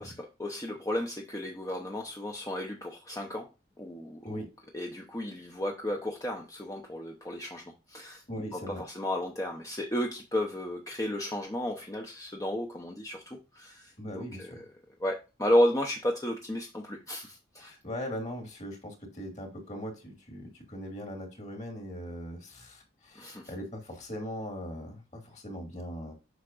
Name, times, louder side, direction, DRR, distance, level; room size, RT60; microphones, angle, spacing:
voice 1, 0.0-3.5 3.8-4.4 4.7-8.2 8.5-14.5 15.0-17.7 23.2-23.5, left 1 dB, 15° left, 1 dB, 0.7 m, -33 dB
voice 2, 4.2-4.6 8.3-8.9 14.0-14.6 17.6-26.1, equal, 40° left, 3 dB, 2.0 m, -40 dB
8.1 x 5.9 x 2.5 m, 0.29 s
head